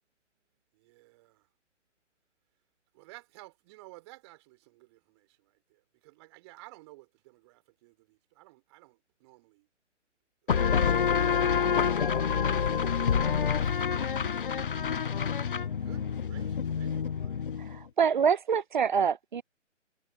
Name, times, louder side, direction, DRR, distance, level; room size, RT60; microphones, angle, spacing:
voice 1, 0.7-1.5 2.9-9.7 10.5-11.2 11.9-12.1 13.4-14.4 14.7-14.9 15.6-17.4, right 22 dB, 20° right, 5.8 m, -55 dB
sound 1, 10.5-17.8, left 7 dB, 45° left, 1.1 m, -27 dB
voice 2, 17.6-19.4, right 7 dB, 40° right, 1.0 m, -26 dB
figure-of-eight pair, 140°, 37 cm